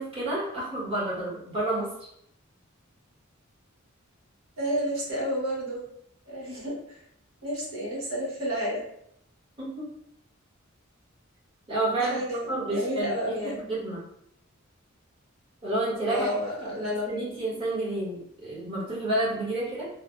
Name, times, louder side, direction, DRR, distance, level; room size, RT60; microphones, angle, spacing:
voice 1, 0.0-1.9 9.6-9.8 11.7-12.2 12.5-14.0 15.6-16.3 16.6-16.7 17.1-19.8, right 2 dB, 25° right, -9 dB, 1.2 m, -30 dB
voice 2, 4.6-5.8 6.3-7.0 7.4-8.8 12.0-13.5 16.1-17.2 17.5-17.6, equal, 75° right, -4 dB, 1.1 m, -31 dB
3.2 x 2.1 x 2.4 m, 0.74 s
head